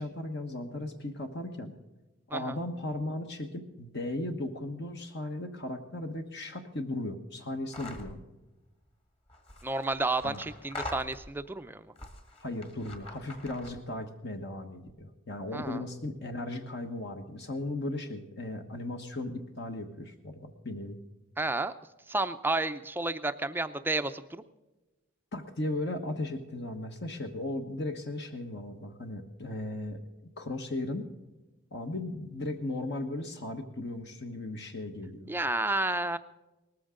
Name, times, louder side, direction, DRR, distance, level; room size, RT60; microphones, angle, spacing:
voice 1, 0.0-1.7 2.3-8.2 10.2-10.4 12.4-21.0 25.3-30.0 30.4-31.1 31.7-35.3, left 1 dB, 50° left, 5 dB, 1.3 m, -36 dB
sound 1, 7.7-8.2 9.3-11.5 12.0-13.9, left 2 dB, 25° left, 1.9 m, -44 dB
voice 2, 9.6-11.8 15.5-15.8 21.4-21.7 22.1-24.4 35.3-36.2, right 2 dB, 10° right, 10 dB, 0.5 m, -31 dB
19.5 x 14.0 x 3.8 m, 1.1 s
head